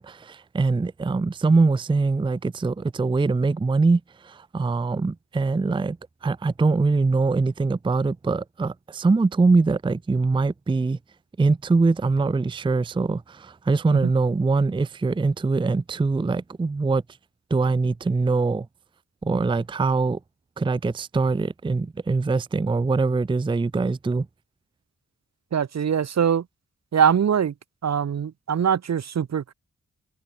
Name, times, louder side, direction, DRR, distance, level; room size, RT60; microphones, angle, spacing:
voice 1, 0.0-6.0 6.2-11.0 11.4-17.0 17.5-18.7 19.2-20.2 20.6-24.3, right 3 dB, 15° right, 0.5 m, -23 dB
voice 2, 25.5-26.5 26.9-27.5 27.8-29.5, right 8 dB, 60° right, 0.9 m, -22 dB
cardioid pair, 60°, 31 cm